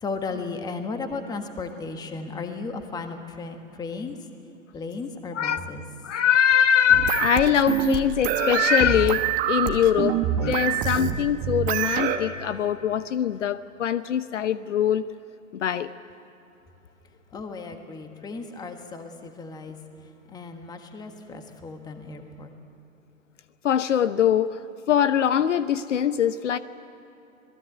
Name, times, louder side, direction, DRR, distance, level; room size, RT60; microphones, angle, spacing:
voice 1, 0.0-4.2 4.7-5.8 17.3-22.5, left 4 dB, 10° left, 6 dB, 1.5 m, -35 dB
voice 2, 5.3-5.7 6.0-15.0 15.5-15.9 23.6-24.6 24.9-26.6, left 9 dB, 60° left, 14 dB, 0.9 m, -22 dB
sound 1, 6.9-12.2, right 10 dB, 20° right, 1.1 m, -25 dB
27.0 x 19.0 x 9.0 m, 2.9 s
hypercardioid pair, 135°, 42 cm